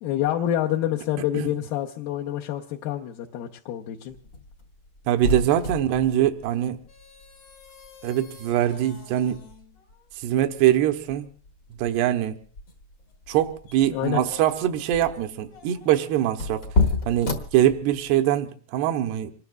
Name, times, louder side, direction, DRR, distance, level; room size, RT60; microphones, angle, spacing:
voice 1, 0.0-4.2 13.9-14.3, left 12 dB, 75° left, 2.4 m, -27 dB
sound 1, 4.1-18.2, left 2 dB, 50° left, 1.4 m, -32 dB
voice 2, 5.1-6.8 8.0-9.4 10.2-11.3 11.7-12.4 13.3-16.6 17.1-19.3, right 12 dB, 80° right, 2.9 m, -23 dB
27.0 x 20.0 x 2.3 m
omnidirectional pair, 4.8 m